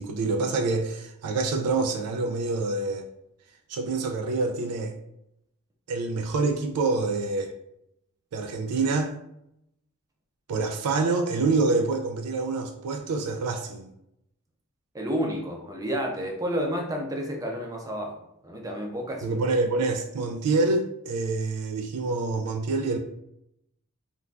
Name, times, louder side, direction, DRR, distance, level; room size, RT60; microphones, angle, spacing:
voice 1, 0.0-3.1 3.7-4.9 5.9-7.5 8.3-9.1 10.5-13.9 19.2-23.0, right 3 dB, 85° right, 0.3 m, -26 dB
voice 2, 14.9-18.1 18.4-19.4, equal, 15° right, 0.5 m, -30 dB
2.5 x 2.2 x 3.2 m
head